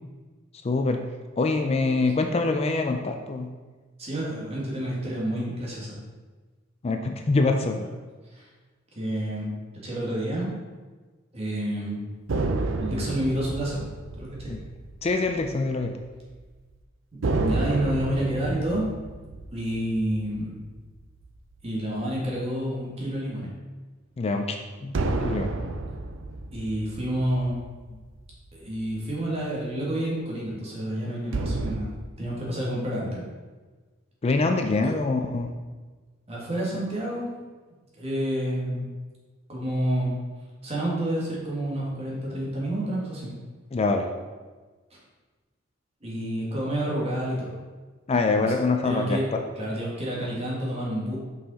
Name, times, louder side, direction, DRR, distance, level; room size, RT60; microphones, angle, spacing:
voice 1, 0.6-1.0 1.4-3.5 6.8-7.8 14.5-14.6 15.0-15.9 24.2-24.9 25.2-25.5 34.2-35.5 43.7-44.1 48.1-49.4, left 3 dB, 30° left, 5 dB, 0.4 m, -24 dB
voice 2, 4.0-6.0 7.7-7.9 8.3-8.5 9.0-10.6 11.3-12.0 12.8-13.9 14.2-14.5 17.1-18.9 19.5-20.6 21.6-23.5 26.5-27.6 27.9-28.0 28.5-31.9 32.2-33.3 34.8-34.9 36.3-37.3 37.9-38.9 39.5-40.2 40.6-43.3 46.0-47.6 48.4-48.6 48.8-49.2 49.5-51.2, right 1 dB, 30° right, -4 dB, 1.9 m, -29 dB
sound 1, 12.3-16.0 16.3-16.4 17.2-21.8 24.9-28.6 31.3-31.8, right 3 dB, 80° right, 0.5 m, -31 dB
5.6 x 5.4 x 4.1 m, 1.3 s
head